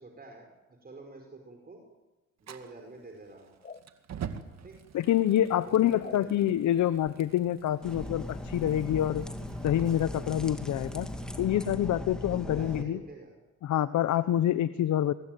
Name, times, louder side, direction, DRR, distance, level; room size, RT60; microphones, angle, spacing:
voice 1, 0.0-1.8 2.4-3.6 4.6-4.8 5.4-6.4 12.2-13.3, right 3 dB, 30° right, 3 dB, 5.1 m, -48 dB
Fire, 2.4-11.4, right 7 dB, 60° right, 2.1 m, -47 dB
sound 1, 3.6-3.9 6.0-6.2 7.0-7.2, left 5 dB, 30° left, 1.4 m, -45 dB
voice 2, 4.9-9.2 9.6-11.1 11.4-13.0 13.6-15.1, left 11 dB, 70° left, 13 dB, 1.0 m, -26 dB
sound 2, 7.8-12.8, left 1 dB, ahead, 2.7 m, -38 dB
24.0 x 22.0 x 9.3 m, 1.1 s
cardioid pair, 90°, 30 cm